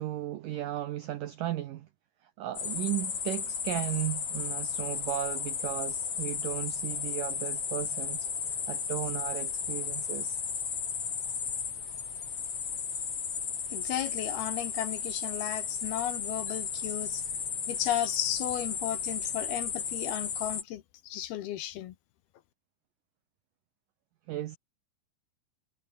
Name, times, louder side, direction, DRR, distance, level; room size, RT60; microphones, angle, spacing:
voice 1, 0.0-1.9 2.2-8.3 8.7-10.4 24.3-24.6, right 13 dB, 85° right, 1.9 m, -35 dB
sound 1, 2.6-20.6, left 6 dB, 40° left, 3.0 m, -34 dB
voice 2, 13.7-17.2 17.7-21.9, left 12 dB, 70° left, 2.7 m, -34 dB
omnidirectional pair, 5.3 m